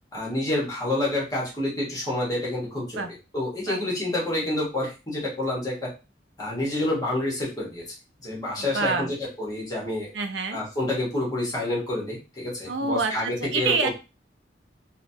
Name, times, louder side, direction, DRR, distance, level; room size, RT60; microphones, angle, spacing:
voice 1, 0.1-5.9 6.4-7.8 8.2-10.1 10.5-13.9, left 1 dB, 20° left, -4 dB, 1.0 m, -28 dB
voice 2, 8.6-9.1 10.1-10.6 12.7-13.9, right 4 dB, 80° right, 7 dB, 0.5 m, -27 dB
3.0 x 2.1 x 2.6 m, 0.29 s
head